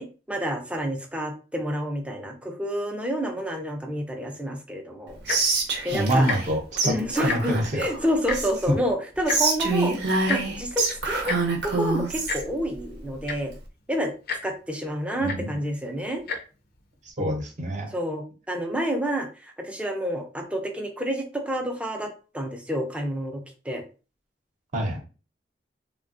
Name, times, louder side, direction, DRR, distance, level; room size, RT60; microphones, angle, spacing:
voice 1, 0.0-5.6 5.8-6.3 6.8-9.9 10.3-11.4 11.6-13.5 13.9-14.1 14.4-16.2 17.9-23.8, equal, 5° right, 3 dB, 0.5 m, -29 dB
Tick-tock, 5.2-5.5 6.2-6.4 6.7-6.8 7.1-7.6 8.3-8.4 9.3-9.4 10.3-10.4 11.3-11.4 12.3-12.4 13.0-13.1 13.2-13.6 14.3-14.4 15.3-15.4 16.2-16.4 17.1-17.2, left 4 dB, 60° left, 0.5 m, -29 dB
Whispering, 5.3-6.5 6.8-6.9 7.2-8.7 9.3-12.4, right 3 dB, 75° right, 0.7 m, -26 dB
voice 2, 5.9-6.9 7.2-7.9 15.2-15.5 17.1-17.9 24.7-25.0, right 1 dB, 45° right, 2 dB, 0.8 m, -26 dB
3.3 x 2.2 x 2.5 m, 0.34 s
head